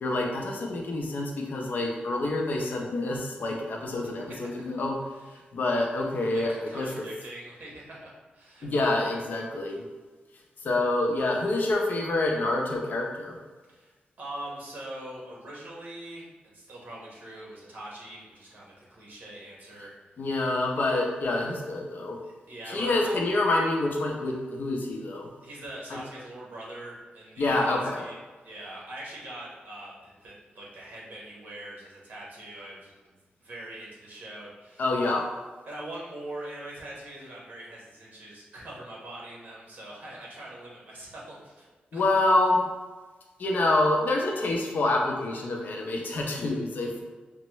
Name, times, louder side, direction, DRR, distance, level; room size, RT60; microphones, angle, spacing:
voice 1, 0.0-5.0 5.5-6.9 8.6-9.8 10.6-13.4 20.2-22.2 22.7-25.3 27.4-28.0 34.8-35.2 41.9-42.7 43.4-47.0, left 2 dB, 60° left, 0 dB, 0.7 m, -27 dB
voice 2, 4.0-4.8 5.1-5.4 6.3-8.7 13.7-19.9 22.2-23.1 25.4-28.2 28.4-34.8 35.6-41.7 41.9-42.2, right 1 dB, 60° right, -4 dB, 1.2 m, -43 dB
5.2 x 2.2 x 3.0 m, 1.3 s
wide cardioid pair, 140°, 3 cm